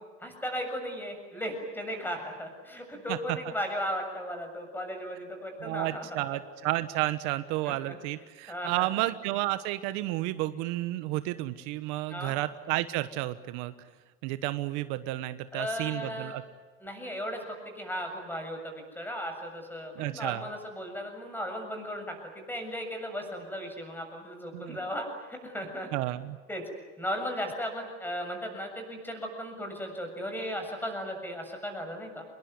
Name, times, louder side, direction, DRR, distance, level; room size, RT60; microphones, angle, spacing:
voice 1, 0.2-6.4 7.6-8.0 8.5-8.9 12.1-12.3 15.5-16.4 16.8-25.9 26.5-26.6 27.0-32.2, equal, 5° left, 4 dB, 7.3 m, -36 dB
voice 2, 5.6-13.7 14.2-16.4 19.9-20.4 24.5-24.8 25.9-26.4, right 16 dB, 70° right, 12 dB, 1.2 m, -31 dB
26.0 x 21.5 x 9.7 m, 1.4 s
supercardioid pair, 125°, 30 cm